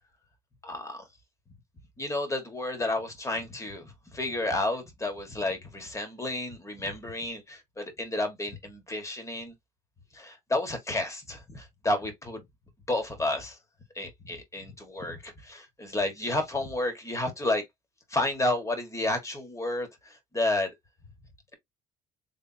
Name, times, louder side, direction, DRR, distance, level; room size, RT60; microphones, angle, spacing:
voice 1, 0.6-1.0 2.0-9.5 10.1-12.4 12.9-13.6 13.9-17.6 18.1-20.7, left 2 dB, 15° left, 1.7 m, -31 dB
3.5 x 3.4 x 2.8 m
cardioid pair, 110°, 17 cm